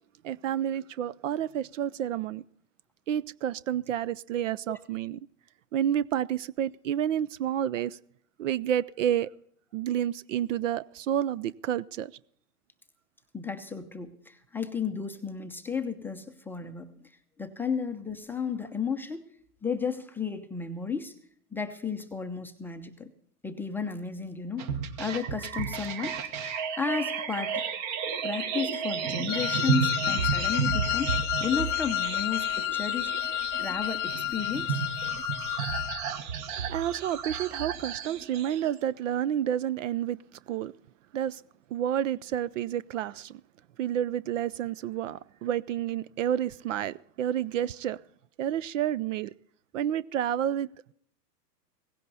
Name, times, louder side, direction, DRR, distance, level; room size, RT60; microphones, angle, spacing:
voice 1, 0.2-2.4 3.1-5.2 5.7-8.0 8.4-9.3 9.7-12.1 36.7-40.2 40.5-40.7 41.1-41.4 41.7-43.4 43.8-48.0 48.4-49.3 49.7-50.7, right 10 dB, 55° right, 0.5 m, -30 dB
voice 2, 13.3-17.1 17.4-19.3 19.6-21.1 21.5-23.1 23.4-26.3 26.8-27.6 28.2-31.1 31.4-33.1 33.6-34.8, left 5 dB, 5° left, 0.6 m, -33 dB
sound 1, 24.6-38.7, right 7 dB, 35° right, 1.3 m, -33 dB
Wind instrument woodwind instrument, 29.3-36.0, left 15 dB, 50° left, 0.5 m, -30 dB
17.0 x 16.0 x 4.1 m
hypercardioid pair, 125°, 48 cm